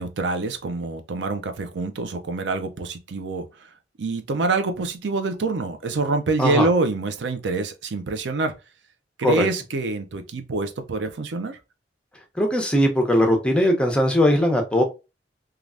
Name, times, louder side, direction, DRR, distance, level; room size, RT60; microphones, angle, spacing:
voice 1, 0.0-3.4 4.0-8.5 9.2-11.6, right 3 dB, 85° right, 0.5 m, -26 dB
voice 2, 6.4-6.7 9.2-9.5 12.4-14.8, left 1 dB, 5° left, 0.6 m, -19 dB
3.2 x 2.4 x 2.4 m
head